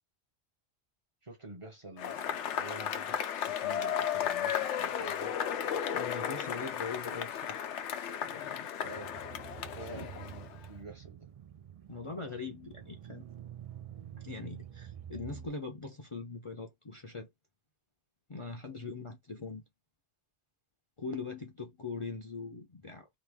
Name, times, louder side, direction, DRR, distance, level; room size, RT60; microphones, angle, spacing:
voice 1, 1.2-5.4 8.8-9.3 9.6-11.3, right 2 dB, 30° right, 0.8 m, -49 dB
Cheering / Applause / Crowd, 2.0-10.6, left 9 dB, 85° left, 0.9 m, -34 dB
sound 1, 5.7-6.9 8.8-15.5, right 10 dB, 65° right, 0.3 m, -48 dB
voice 2, 5.9-7.7 8.2-8.7 9.9-10.1 11.9-13.2 14.2-17.3 18.3-19.6 21.0-23.1, left 4 dB, 35° left, 0.5 m, -41 dB
3.0 x 2.4 x 3.5 m
omnidirectional pair, 1.2 m